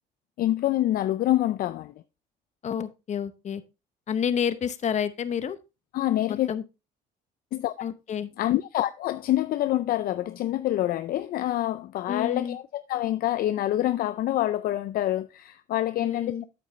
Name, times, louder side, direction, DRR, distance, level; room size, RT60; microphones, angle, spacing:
voice 1, 0.4-1.9 5.9-6.5 7.5-7.7 8.4-16.3, left 14 dB, 60° left, 0.5 m, -26 dB
voice 2, 2.6-3.6 4.1-5.6 6.3-6.6 7.8-8.3 12.1-12.6 16.0-16.4, left 8 dB, 45° left, 0.9 m, -29 dB
8.6 x 7.7 x 3.1 m
cardioid pair, 110°, 17 cm